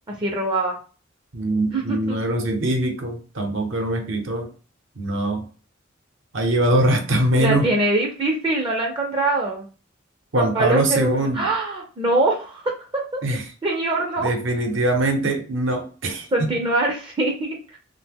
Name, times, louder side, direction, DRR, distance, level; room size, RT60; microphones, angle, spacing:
voice 1, 0.1-0.8 1.7-2.2 7.4-9.7 10.4-13.2 13.6-14.3 16.3-17.8, right 2 dB, 25° right, 0 dB, 0.5 m, -23 dB
voice 2, 1.3-4.5 5.0-5.5 6.3-7.7 10.3-11.5 13.2-13.4 14.2-16.5, right 1 dB, 65° right, 4 dB, 0.7 m, -22 dB
2.8 x 2.1 x 3.4 m, 0.37 s
head